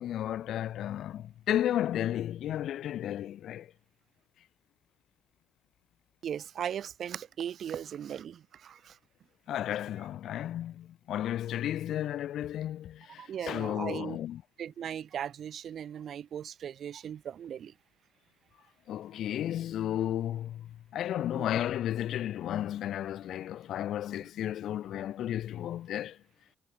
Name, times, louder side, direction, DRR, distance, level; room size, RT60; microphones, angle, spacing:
voice 1, 0.0-3.7 9.5-14.4 18.9-26.2, left 11 dB, 75° left, 1.3 m, -33 dB
voice 2, 6.2-9.0 13.2-14.2 14.6-17.7 21.3-21.5, right 9 dB, 65° right, 2.1 m, -38 dB
cardioid pair, 75°, 0 cm